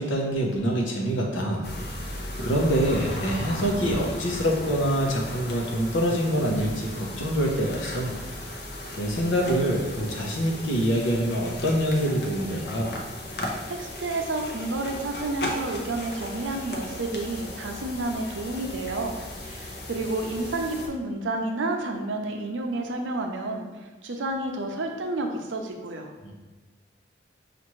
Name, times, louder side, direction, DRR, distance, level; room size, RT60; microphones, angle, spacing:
voice 1, 0.0-1.7 2.0-8.1 8.4-8.5 9.0-13.0 26.2-26.3, equal, 85° left, 0 dB, 0.8 m, -25 dB
sound 1, 1.6-20.9, left 1 dB, 55° left, 0.6 m, -36 dB
voice 2, 13.3-19.2 19.4-23.7 24.0-26.1, right 2 dB, 80° right, 3 dB, 0.6 m, -30 dB
5.8 x 2.5 x 3.0 m, 1.3 s
head